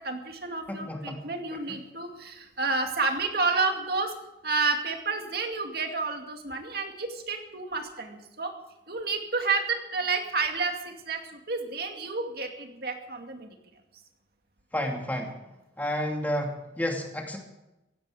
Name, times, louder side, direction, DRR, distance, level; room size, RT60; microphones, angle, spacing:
voice 1, 0.0-4.1 4.4-8.5 8.9-13.5, right 4 dB, 55° right, 4 dB, 2.3 m, -30 dB
voice 2, 0.7-1.2 1.7-1.8 14.7-15.4 15.8-17.4, left 1 dB, 10° left, 1 dB, 2.5 m, -31 dB
17.5 x 16.0 x 5.0 m, 0.95 s
head